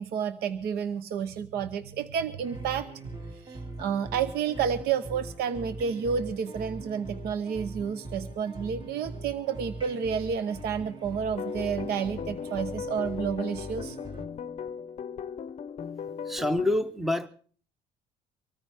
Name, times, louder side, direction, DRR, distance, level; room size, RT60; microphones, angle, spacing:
voice 1, 0.0-14.0, right 7 dB, 70° right, 12 dB, 0.8 m, -30 dB
sound 1, 2.4-14.3, right 2 dB, 25° right, 2.1 m, -41 dB
sound 2, 11.3-16.8, left 7 dB, 40° left, 0.6 m, -37 dB
voice 2, 16.2-17.3, left 1 dB, ahead, 11 dB, 0.7 m, -27 dB
24.0 x 14.0 x 3.4 m, 0.43 s
cardioid pair, 110°, 17 cm